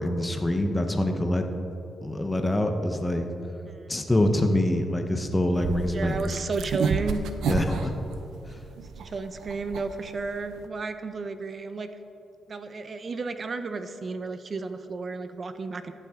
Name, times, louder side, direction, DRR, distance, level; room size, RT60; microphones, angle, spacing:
voice 1, 0.0-1.4 2.0-3.2 3.9-6.3 7.4-7.9 8.4-8.6, left 1 dB, 15° left, 5 dB, 0.9 m, -25 dB
sound 1, 5.5-10.7, right 5 dB, 85° right, 0.6 m, -31 dB
voice 2, 5.9-7.2 9.0-11.9 12.5-15.9, right 4 dB, 40° right, 9 dB, 0.6 m, -33 dB
14.0 x 9.2 x 3.7 m, 2.9 s
cardioid pair, 110°, 0 cm